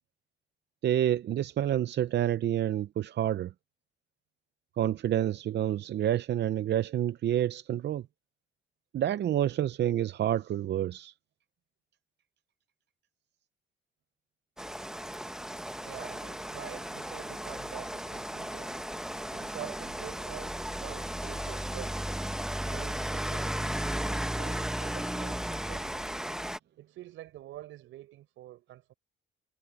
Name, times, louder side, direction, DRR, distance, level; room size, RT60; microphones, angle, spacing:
voice 1, 0.8-3.5 4.8-8.0 8.9-11.1, right 11 dB, 60° right, 0.7 m, -28 dB
Rain, 14.6-26.6, equal, 5° right, 1.0 m, -35 dB
voice 2, 15.8-18.8 19.3-22.0 22.7-26.2 26.8-28.9, right 14 dB, 85° right, 4.7 m, -47 dB
cardioid pair, 90°, 20 cm